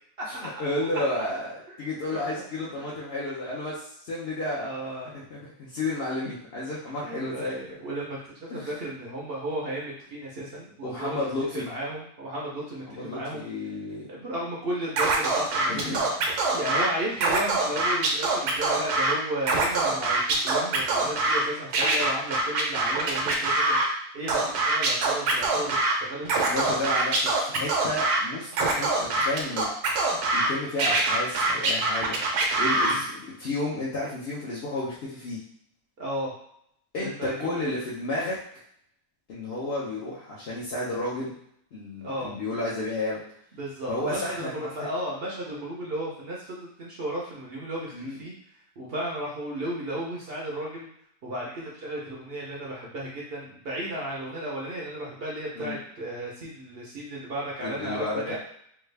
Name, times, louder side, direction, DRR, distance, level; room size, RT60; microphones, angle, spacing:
voice 1, 0.3-4.8 5.0-7.8 8.5-8.7 10.8-11.7 12.9-14.1 15.7-16.1 26.4-29.7 30.3-35.4 36.9-38.4 39.3-41.3 41.7-43.2 43.9-44.9 47.9-48.2 55.6-55.8 57.6-58.4, left 2 dB, 55° left, -7 dB, 0.7 m, -32 dB
voice 2, 2.1-2.5 4.6-5.1 7.0-11.2 11.5-13.5 14.1-16.1 16.5-26.4 32.8-33.1 36.0-36.3 37.0-37.6 42.0-42.4 43.6-48.3 48.8-50.9 51.2-58.4, right 1 dB, 55° right, -4 dB, 0.7 m, -34 dB
Scratching (performance technique), 15.0-16.9 17.2-19.1 19.4-21.4 21.7-23.9 24.3-25.9 26.2-28.2 28.5-30.5 30.8-33.0, right 3 dB, 75° right, 1.2 m, -24 dB
3.4 x 2.3 x 3.2 m, 0.69 s
omnidirectional pair, 1.7 m